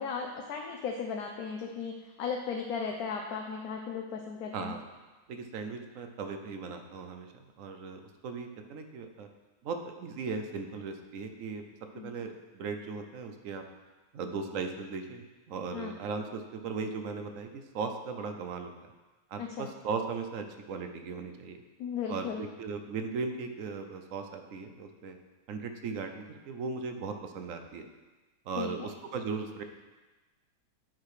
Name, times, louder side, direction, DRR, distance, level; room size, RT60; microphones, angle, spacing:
voice 1, 0.0-4.7 11.9-12.1 15.7-15.9 19.4-19.7 21.8-22.5 28.6-28.9, left 6 dB, 70° left, 1 dB, 1.1 m, -36 dB
voice 2, 4.5-4.8 5.3-9.3 9.6-11.6 11.9-13.6 14.1-18.7 19.3-21.6 22.1-25.2 25.5-27.9 28.5-29.6, right 4 dB, 60° right, 6 dB, 1.0 m, -37 dB
9.3 x 4.8 x 4.9 m, 1.2 s
omnidirectional pair, 1.8 m